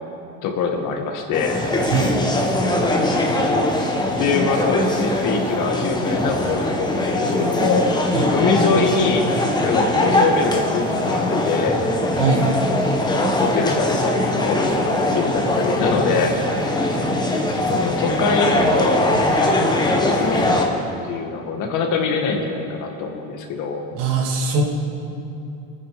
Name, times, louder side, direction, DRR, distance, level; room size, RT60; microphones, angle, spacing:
voice 1, 0.4-1.6 4.2-8.0 8.3-9.3 9.6-11.8 13.4-16.4 17.7-20.8 21.0-23.8, left 5 dB, 60° left, 3 dB, 2.1 m, -24 dB
sound 1, 1.3-20.7, left 1 dB, 10° left, 1.5 m, -21 dB
voice 2, 1.8-2.2 8.1-8.3 12.2-12.5 23.9-24.6, right 5 dB, 80° right, 0 dB, 2.8 m, -21 dB
24.0 x 9.5 x 5.2 m, 2.8 s
cardioid pair, 150°, 35 cm